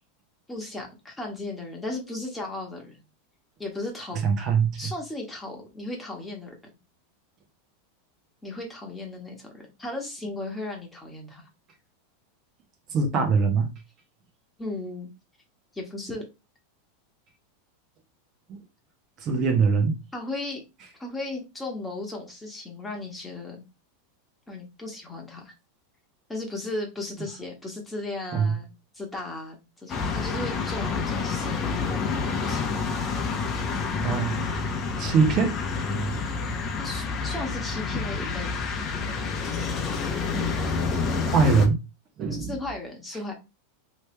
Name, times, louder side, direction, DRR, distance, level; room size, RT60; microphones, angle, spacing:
voice 1, 0.5-3.0 3.6-4.2 4.8-6.5 8.4-11.4 14.6-15.1 15.7-16.2 20.1-20.6 21.0-23.6 24.5-25.5 26.3-28.7 28.9-32.1 32.4-32.9 33.4-33.6 36.8-38.6 42.3-43.3, left 2 dB, 10° left, 1.2 m, -36 dB
voice 2, 4.2-4.9 12.9-13.7 18.5-18.6 19.2-20.0 28.3-28.5 34.0-34.4 35.0-35.6 40.3-40.5 41.2-41.8 42.2-42.5, right 5 dB, 35° right, 0.9 m, -22 dB
sound 1, 29.9-41.7, left 4 dB, 25° left, 0.8 m, -28 dB
3.2 x 3.1 x 3.2 m
supercardioid pair, 145°, 0 cm